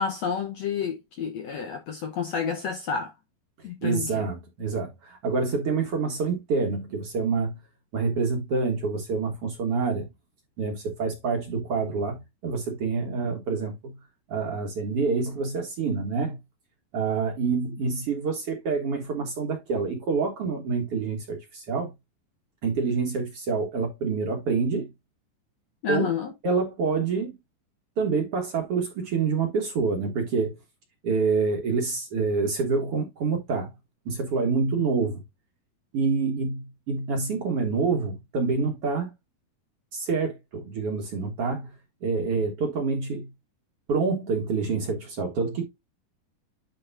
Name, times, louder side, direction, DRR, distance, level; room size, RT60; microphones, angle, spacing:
voice 1, 0.0-3.1 3.6-4.3 25.8-26.3, left 6 dB, 70° left, 1.7 m, -30 dB
voice 2, 3.6-7.6 7.9-10.1 10.6-14.0 14.3-16.4 16.9-21.9 22.6-24.9 25.9-26.1 26.4-27.3 28.0-30.6 31.0-33.7 34.1-35.2 35.9-39.1 39.9-41.7 42.0-43.3 43.9-45.7, right 4 dB, 50° right, 2.0 m, -27 dB
10.5 x 4.7 x 2.6 m
omnidirectional pair, 4.2 m